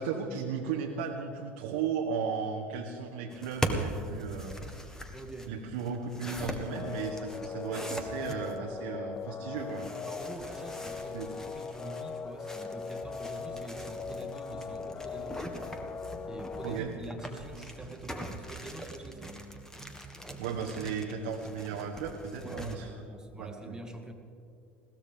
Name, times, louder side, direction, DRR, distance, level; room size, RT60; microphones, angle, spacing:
voice 1, 0.0-4.6 5.5-9.9 11.1-11.3 16.6-16.9 20.4-22.9 23.4-23.8, right 6 dB, 75° right, 0 dB, 1.2 m, -35 dB
sound 1, 3.3-8.6 9.6-22.7, equal, 10° left, 1.6 m, -41 dB
voice 2, 5.1-5.5 10.0-15.6 16.3-19.4 22.4-24.1, right 2 dB, 10° right, 2 dB, 2.0 m, -45 dB
sound 2, 6.7-16.8, left 5 dB, 30° left, 0.5 m, -40 dB
sound 3, 13.0-21.0, right 5 dB, 35° right, 1.0 m, -51 dB
20.5 x 16.0 x 3.6 m, 2.5 s
hypercardioid pair, 75°, 6 cm